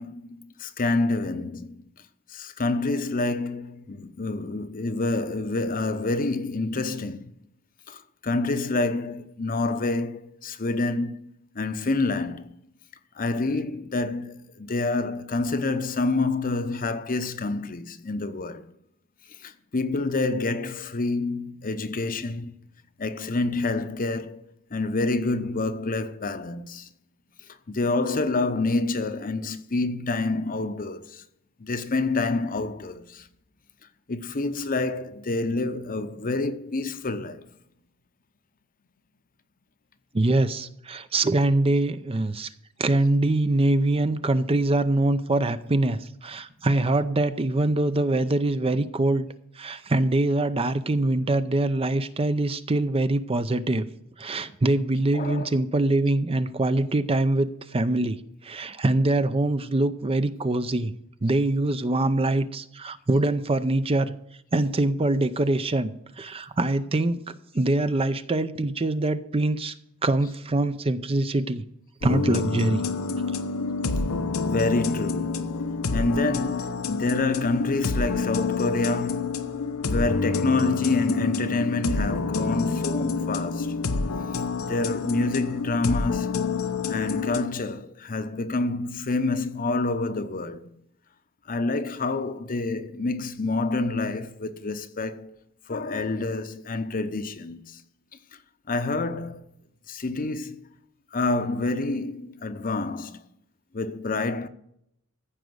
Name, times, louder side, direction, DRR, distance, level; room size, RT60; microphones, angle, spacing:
voice 1, 0.0-1.8 2.3-7.3 7.9-11.3 11.5-12.5 13.2-18.6 19.4-22.5 23.0-24.4 24.7-26.9 27.7-31.2 31.6-33.3 34.1-37.5 55.1-55.5 70.2-70.3 74.4-75.6 75.9-83.7 84.6-86.3 86.9-90.7 91.5-95.4 95.7-97.8 98.7-99.5 99.9-100.7 101.1-103.2 103.7-104.5, left 3 dB, 40° left, 0.8 m, -27 dB
voice 2, 40.1-42.5 42.8-49.3 49.6-53.9 54.2-58.2 58.4-60.9 61.2-64.1 64.5-69.7 70.0-71.6 72.0-72.8, right 2 dB, 25° right, 0.6 m, -24 dB
sound 1, 72.0-87.4, left 4 dB, 90° left, 0.9 m, -28 dB
14.5 x 5.1 x 7.9 m
head